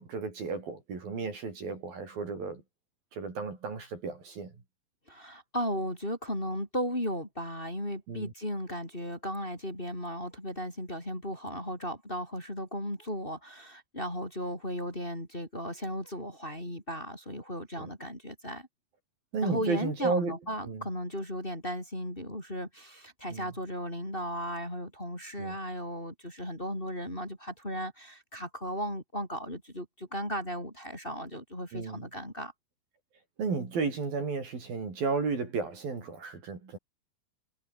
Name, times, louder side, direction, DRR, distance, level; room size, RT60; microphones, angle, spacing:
voice 1, 0.0-2.6 3.1-4.5 8.1-8.3 17.8-17.9 19.3-20.4 20.6-20.9 23.3-23.5 25.4-25.6 31.7-32.0 33.4-36.8, right 4 dB, 55° right, 6.9 m, -33 dB
voice 2, 5.1-18.7 19.4-32.5, equal, 10° left, 6.3 m, -36 dB
omnidirectional pair, 5.1 m